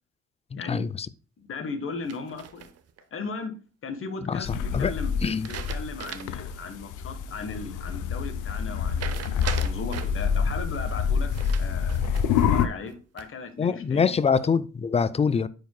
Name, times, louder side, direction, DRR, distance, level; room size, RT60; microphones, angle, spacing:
voice 1, 0.5-0.9 4.3-4.9 5.2-5.5 13.6-15.5, left 6 dB, 20° left, 0.3 m, -24 dB
voice 2, 1.4-2.7 3.1-3.5 3.8-11.3 11.6-12.1 12.5-14.1, left 4 dB, 45° left, 1.2 m, -37 dB
sound 1, 2.1-3.0 5.2-6.5 6.9-7.0 9.0-10.3 11.3-12.5 12.9-13.5, right 9 dB, 55° right, 0.7 m, -39 dB
sound 2, 4.4-12.7, left 7 dB, 85° left, 0.6 m, -27 dB
9.0 x 4.9 x 2.2 m
cardioid pair, 90°, 30 cm